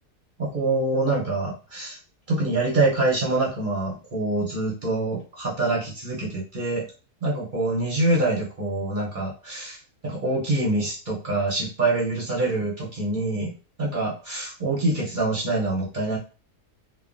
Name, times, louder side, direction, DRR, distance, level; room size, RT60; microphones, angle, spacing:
voice 1, 0.4-2.0 2.3-6.8 7.2-13.5 13.8-16.2, right 2 dB, 45° right, -4 dB, 0.6 m, -25 dB
3.1 x 2.1 x 2.5 m, 0.34 s
omnidirectional pair, 1.6 m